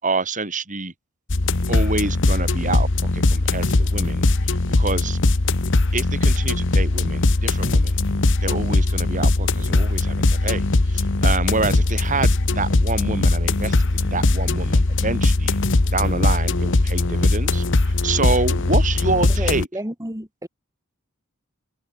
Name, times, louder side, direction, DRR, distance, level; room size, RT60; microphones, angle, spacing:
voice 1, 0.0-0.9 1.7-5.2 5.9-8.0 8.4-12.3 12.5-15.6 15.9-19.7, right 3 dB, 35° right, 6.1 m, -27 dB
sound 1, 1.3-19.6, left 2 dB, 60° left, 1.2 m, -20 dB
voice 2, 19.3-20.5, right 1 dB, 15° right, 5.8 m, -31 dB
head